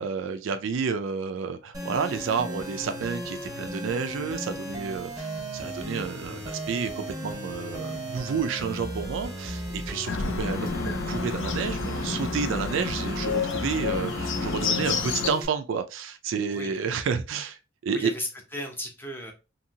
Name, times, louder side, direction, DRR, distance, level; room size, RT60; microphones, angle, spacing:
voice 1, 0.0-18.1, right 5 dB, 65° right, 0.4 m, -30 dB
sound 1, 1.7-15.5, right 1 dB, 20° right, 0.9 m, -35 dB
Bird, 10.1-15.3, left 5 dB, 65° left, 0.4 m, -30 dB
voice 2, 16.5-16.8 17.9-19.3, equal, 10° left, 0.7 m, -35 dB
2.8 x 2.7 x 2.7 m
head